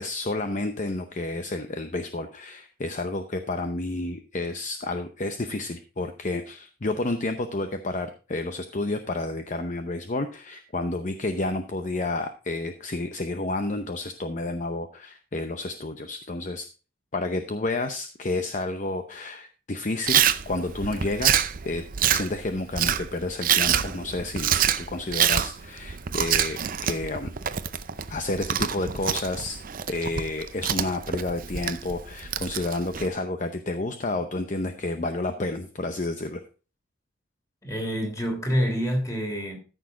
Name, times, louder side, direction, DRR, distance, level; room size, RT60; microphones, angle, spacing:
voice 1, 0.0-16.7 17.1-21.8 22.1-27.3 28.1-29.6 29.9-36.4, left 2 dB, 35° left, 7 dB, 0.7 m, -30 dB
Chewing mastication, 20.1-33.1, right 9 dB, 40° right, 0.5 m, -26 dB
voice 2, 37.6-39.6, equal, 15° left, 2 dB, 3.3 m, -27 dB
14.0 x 6.3 x 3.8 m, 0.34 s
head